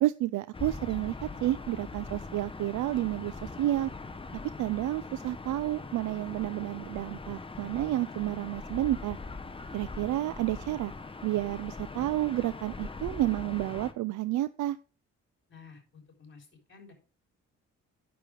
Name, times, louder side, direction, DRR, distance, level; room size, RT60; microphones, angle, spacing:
voice 1, 0.0-3.9 4.6-9.2 9.7-10.9 11.2-14.8, right 15 dB, 75° right, 15 dB, 0.5 m, -30 dB
Gull seagull / Ocean, 0.5-13.9, left 3 dB, 20° left, 1.0 m, -41 dB
voice 2, 15.5-16.9, left 5 dB, 40° left, 4 dB, 4.1 m, -52 dB
9.3 x 6.9 x 4.8 m, 0.36 s
cardioid pair, 90°, 30 cm